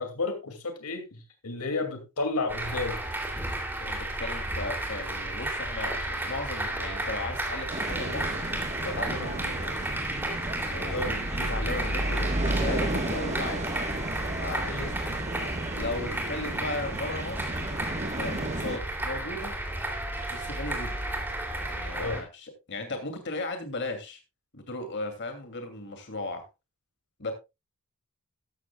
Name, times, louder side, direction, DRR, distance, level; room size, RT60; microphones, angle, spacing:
voice 1, 0.0-3.0 9.4-9.5 10.9-11.2 14.7-14.9 22.0-22.2, left 3 dB, 90° left, 6 dB, 2.5 m, -32 dB
sound 1, 2.5-22.2, right 1 dB, 10° right, 2.8 m, -32 dB
voice 2, 3.8-8.4 8.8-9.8 10.7-13.7 14.4-14.9 15.7-17.5 18.2-19.6 20.3-21.0 21.5-24.2 24.5-26.4 27.2-27.3, left 2 dB, 55° left, 6 dB, 2.7 m, -36 dB
sound 2, 7.7-18.8, right 2 dB, 30° right, 1.4 m, -35 dB
13.5 x 13.0 x 2.3 m, 0.25 s
head